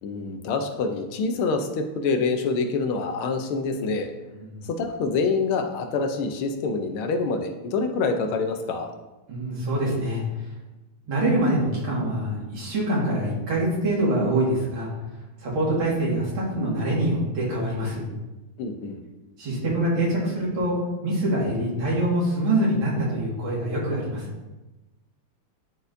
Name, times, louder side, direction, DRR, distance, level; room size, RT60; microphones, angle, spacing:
voice 1, 0.0-4.1 4.6-8.9 18.6-19.0, left 4 dB, 85° left, 5 dB, 1.6 m, -26 dB
voice 2, 9.3-10.2 11.1-14.9 15.4-18.1 19.4-20.8 21.0-24.3, right 1 dB, 70° right, -5 dB, 2.7 m, -24 dB
11.0 x 4.2 x 2.6 m, 1.1 s
omnidirectional pair, 2.3 m